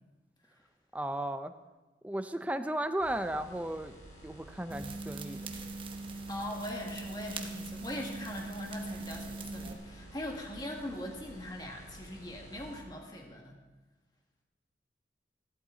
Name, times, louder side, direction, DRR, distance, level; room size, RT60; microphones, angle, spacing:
voice 1, 0.9-1.5 2.0-4.0 4.2-5.4, right 1 dB, 10° right, 9 dB, 0.5 m, -35 dB
sound 1, 3.0-12.8, right 1 dB, 40° left, 4.5 m, -52 dB
sound 2, 4.7-9.7, right 3 dB, 30° right, 1.0 m, -41 dB
voice 2, 6.3-13.6, left 1 dB, 25° left, 1 dB, 1.6 m, -41 dB
15.0 x 12.0 x 3.8 m, 1.1 s
head